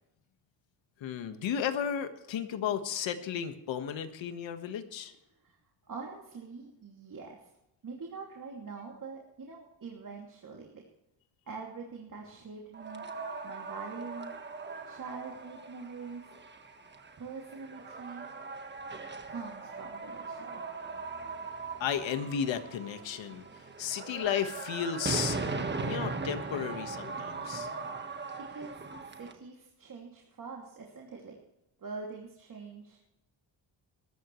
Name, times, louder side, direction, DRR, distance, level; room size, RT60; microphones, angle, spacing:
voice 1, 1.0-5.1 21.8-23.5 23.8-25.4 25.8-27.7, left 8 dB, 85° left, 8 dB, 1.6 m, -34 dB
voice 2, 5.9-7.5 7.8-10.8 11.5-13.0 13.4-14.3 14.9-16.2 17.2-18.2 19.3-20.7 28.5-31.4 31.8-33.2, right 4 dB, 45° right, -1 dB, 2.7 m, -44 dB
sound 1, 12.7-29.3, right 4 dB, 25° right, 1.5 m, -39 dB
21.0 x 13.5 x 3.2 m, 0.88 s
cardioid pair, 115°, 44 cm